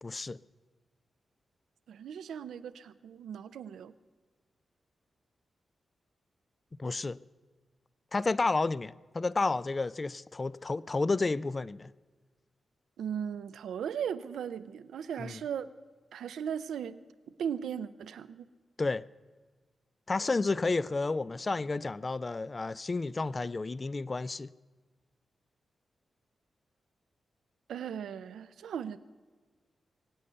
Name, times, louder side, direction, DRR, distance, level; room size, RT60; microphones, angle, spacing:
voice 1, 0.0-0.4 6.8-7.2 8.1-11.9 15.2-15.4 18.8-19.0 20.1-24.5, left 3 dB, 40° left, 0.4 m, -31 dB
voice 2, 1.9-3.9 13.0-15.7 16.1-17.0 17.4-18.5 27.7-29.0, right 8 dB, 90° right, 0.5 m, -37 dB
22.5 x 8.5 x 6.8 m
cardioid pair, 55°, 0 cm